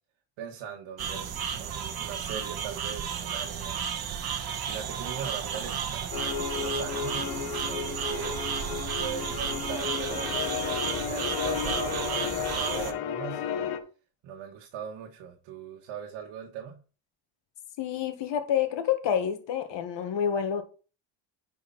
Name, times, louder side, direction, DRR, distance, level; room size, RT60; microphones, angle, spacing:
voice 1, 0.4-3.8 4.6-8.4 9.0-13.7 14.2-16.8, right 8 dB, 65° right, 1.7 m, -40 dB
sound 1, 1.0-12.9, right 7 dB, 45° right, 1.5 m, -33 dB
sound 2, 6.1-13.8, left 8 dB, 85° left, 1.4 m, -33 dB
voice 2, 17.8-20.6, left 8 dB, 60° left, 1.9 m, -28 dB
10.0 x 5.0 x 4.3 m
cardioid pair, 105°, 50 cm